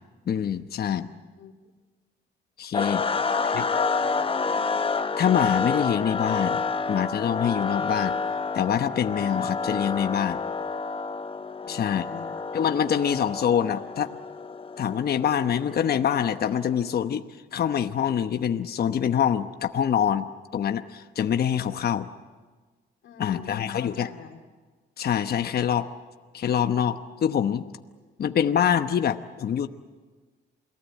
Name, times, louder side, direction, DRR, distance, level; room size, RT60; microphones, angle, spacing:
voice 1, 0.3-1.1 2.6-3.0 3.5-3.6 5.2-6.6 6.9-8.1 8.5-10.4 11.7-12.0 12.5-14.1 14.8-17.2 17.5-20.3 20.5-22.1 23.2-24.1 25.0-25.9 26.3-27.7 28.2-29.7, left 8 dB, 50° left, 9 dB, 1.0 m, -25 dB
sound 1, 2.7-16.8, left 4 dB, 25° left, 1.0 m, -29 dB
voice 2, 3.1-4.6 11.6-12.5 23.0-24.4, left 7 dB, 70° left, 5 dB, 2.7 m, -43 dB
28.5 x 19.0 x 8.5 m, 1.4 s
cardioid pair, 90°, 20 cm